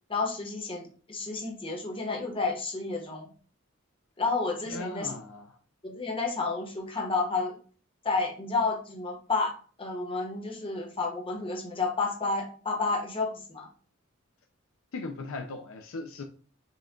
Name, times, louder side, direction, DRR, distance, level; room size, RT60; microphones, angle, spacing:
voice 1, 0.1-3.3 4.2-5.2 5.8-7.6 8.0-9.5 9.8-13.7, left 3 dB, 25° left, 1.2 m, -30 dB
voice 2, 4.7-5.5 14.9-16.2, left 3 dB, 70° left, 0.5 m, -38 dB
5.8 x 2.4 x 3.7 m
head